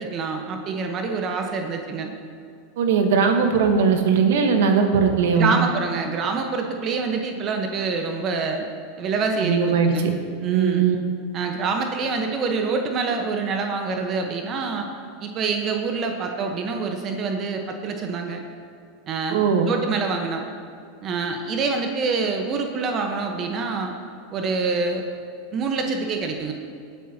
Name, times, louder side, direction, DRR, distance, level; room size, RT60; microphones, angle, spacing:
voice 1, 0.0-2.1 5.3-8.7 9.0-10.1 10.4-10.9 11.3-14.9 15.2-18.4 19.1-20.4 21.0-23.9 24.3-25.1 25.5-26.5, right 4 dB, 40° right, 4 dB, 1.2 m, -26 dB
voice 2, 2.8-5.6 9.4-9.9 10.4-11.0 19.3-19.7, right 6 dB, 70° right, 5 dB, 1.3 m, -19 dB
18.5 x 10.0 x 2.9 m, 2.3 s
hypercardioid pair, 100°, 0 cm